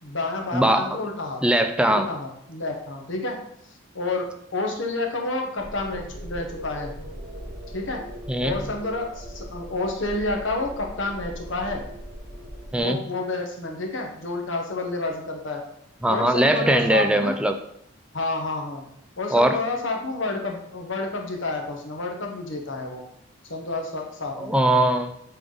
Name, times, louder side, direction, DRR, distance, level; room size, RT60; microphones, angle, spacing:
voice 1, 0.0-1.4 1.9-3.4 3.9-4.3 4.5-6.9 7.7-8.0 8.4-11.8 12.8-15.6 16.1-17.4 18.1-18.8 19.2-23.0 23.5-24.5, left 2 dB, 75° left, 2 dB, 1.2 m, -29 dB
voice 2, 0.5-1.0 1.4-2.1 8.3-8.6 12.7-13.0 16.0-17.5 19.3-19.6 24.4-25.2, right 1 dB, 5° right, 6 dB, 0.3 m, -20 dB
sound 1, 5.6-12.8, equal, 60° right, 2.4 m, -39 dB
8.3 x 3.6 x 3.9 m, 0.74 s
head